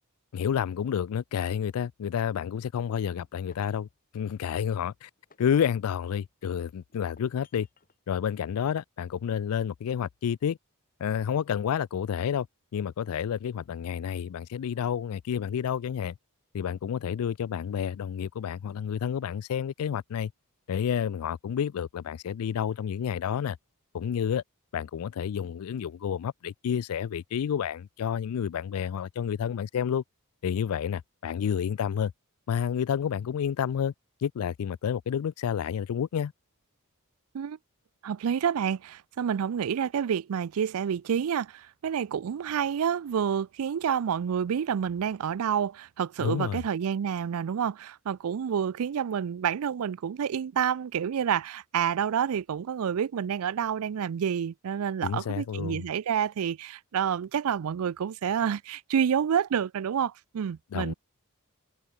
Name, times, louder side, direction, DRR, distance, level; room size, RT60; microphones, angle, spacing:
voice 1, 0.3-3.9 4.1-5.1 5.4-7.7 8.1-10.6 11.0-12.5 12.7-16.1 16.5-20.3 20.7-23.6 23.9-24.4 24.7-30.0 30.4-32.1 32.5-33.9 34.2-36.3 46.2-46.6 55.0-55.9 60.7-60.9, left 8 dB, 75° left, 0.3 m, -30 dB
sound 1, 3.1-3.9 4.6-6.2 6.6-8.0, left 3 dB, 40° left, 4.0 m, -60 dB
voice 2, 38.0-60.9, right 8 dB, 70° right, 0.4 m, -28 dB
open air
head